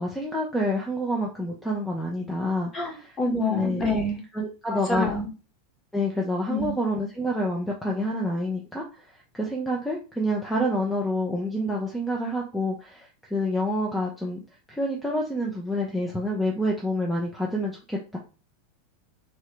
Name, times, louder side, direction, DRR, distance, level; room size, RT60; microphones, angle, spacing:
voice 1, 0.0-3.1 3.5-3.8 4.3-5.1 5.9-9.1 9.3-14.4 14.7-18.2, equal, 5° left, -1 dB, 0.6 m, -28 dB
voice 2, 2.7-4.2 4.7-5.3 6.5-6.7, left 2 dB, 25° left, 1 dB, 1.2 m, -27 dB
3.2 x 2.8 x 3.2 m, 0.33 s
figure-of-eight pair, 85°, 0 cm